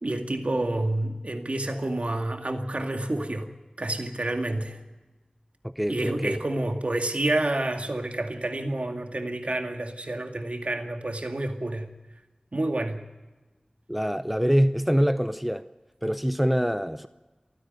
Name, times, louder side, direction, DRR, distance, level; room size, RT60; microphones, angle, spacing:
voice 1, 0.0-3.5 3.8-4.8 5.9-11.9 12.5-13.0, right 1 dB, 65° right, 2.2 m, -29 dB
voice 2, 5.6-6.4 13.9-15.7 16.0-17.1, equal, 5° right, 0.7 m, -25 dB
28.5 x 9.9 x 9.3 m
wide cardioid pair, 45°, 2 cm